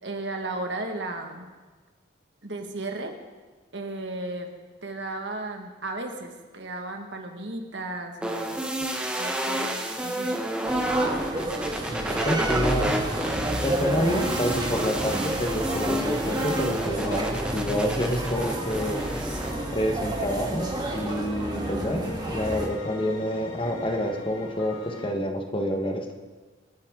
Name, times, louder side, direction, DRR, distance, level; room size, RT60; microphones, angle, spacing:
voice 1, 0.0-1.5 2.4-3.1 3.7-4.5 4.8-8.6 9.2-10.4 21.5-22.1, right 2 dB, 65° right, 4 dB, 1.7 m, -35 dB
sound 1, 8.2-19.5, right 1 dB, 5° right, 1.1 m, -30 dB
sound 2, 10.7-22.7, right 1 dB, 20° right, 1.9 m, -30 dB
voice 2, 11.9-12.9 13.4-19.0 19.7-26.1, equal, 25° left, 3 dB, 1.3 m, -28 dB
sound 3, 12.9-25.1, left 3 dB, 85° left, 1.7 m, -41 dB
27.0 x 9.7 x 3.8 m, 1.4 s
head